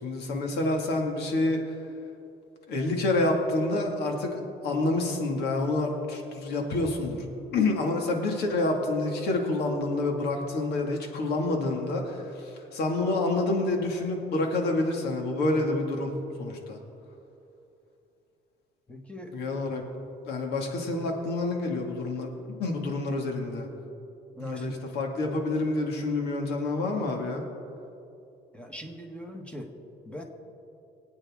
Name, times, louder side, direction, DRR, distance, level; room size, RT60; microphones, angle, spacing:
voice 1, 0.0-1.6 2.7-7.2 7.5-16.8 19.3-19.8 20.3-22.3 22.6-23.7 24.4-27.4, left 2 dB, 75° left, 2 dB, 2.2 m, -28 dB
voice 2, 18.9-19.3 24.4-24.7 28.5-29.7 30.1-30.2, equal, 5° left, 2 dB, 1.6 m, -41 dB
24.5 x 8.7 x 3.7 m, 2.8 s
cardioid pair, 110°, 17 cm